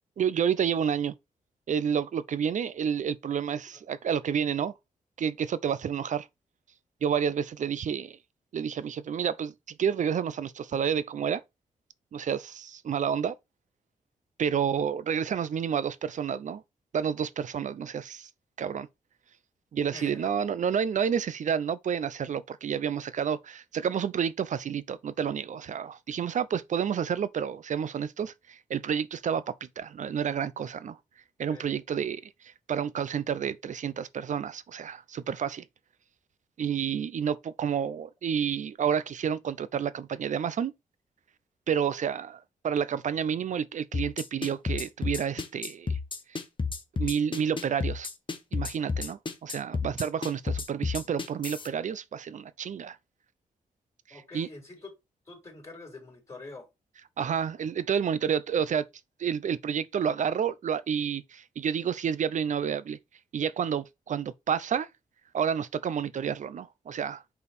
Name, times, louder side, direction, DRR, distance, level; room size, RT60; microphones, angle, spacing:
voice 1, 0.2-1.1 1.7-4.7 5.2-6.3 7.0-8.2 8.5-11.4 12.1-13.4 14.4-16.6 16.9-18.3 18.6-18.9 19.7-31.0 31.4-35.7 36.6-40.7 41.7-46.0 46.3-46.4 47.0-48.1 48.5-53.0 54.1-54.5 57.2-58.9 59.2-63.0 63.3-64.9 65.3-67.2, right 7 dB, 60° right, 0.5 m, -30 dB
voice 2, 19.9-20.3 31.5-31.6 54.1-54.9 55.3-56.7, left 3 dB, 20° left, 3.3 m, -45 dB
sound 1, 43.9-51.7, left 4 dB, 35° left, 1.2 m, -31 dB
5.2 x 4.5 x 4.1 m
cardioid pair, 90°, 15 cm